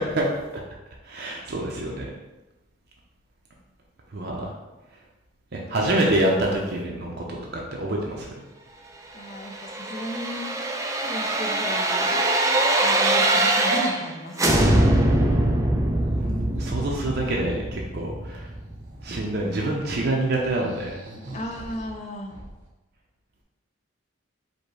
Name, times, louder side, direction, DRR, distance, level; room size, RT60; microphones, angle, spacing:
voice 1, 0.1-0.4 1.0-2.1 4.1-4.5 5.5-8.3 16.2-16.3 16.6-18.5 19.0-21.0, right 1 dB, 55° right, -1 dB, 0.6 m, -26 dB
voice 2, 9.1-10.6 11.0-12.1 12.8-14.7 21.3-22.3, equal, 35° left, 1 dB, 0.6 m, -35 dB
sound 1, 9.4-14.1 14.4-19.2 19.6-19.7, right 1 dB, 15° right, 0.4 m, -23 dB
sound 2, 15.5-15.7 16.0-17.5 18.5-19.5 19.9-20.0 20.3-22.7, right 1 dB, 85° right, 1.0 m, -45 dB
5.1 x 2.2 x 4.6 m, 1.0 s
head